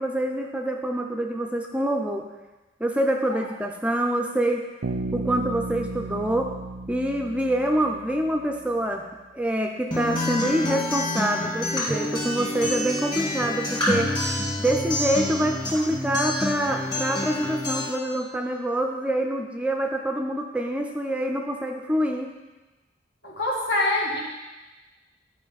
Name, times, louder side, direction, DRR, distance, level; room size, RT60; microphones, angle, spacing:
voice 1, 0.0-2.3 2.8-4.6 5.1-6.5 6.9-9.1 9.3-14.1 14.6-22.3, right 1 dB, 5° right, 2 dB, 0.5 m, -26 dB
Bass guitar, 4.8-8.5, right 2 dB, 80° right, 0.6 m, -34 dB
Acoustic guitar, 9.9-17.9, left 1 dB, 25° left, 1.9 m, -28 dB
voice 2, 23.2-24.2, left 2 dB, 70° left, -3 dB, 1.9 m, -25 dB
11.0 x 5.0 x 4.0 m, 1.1 s
head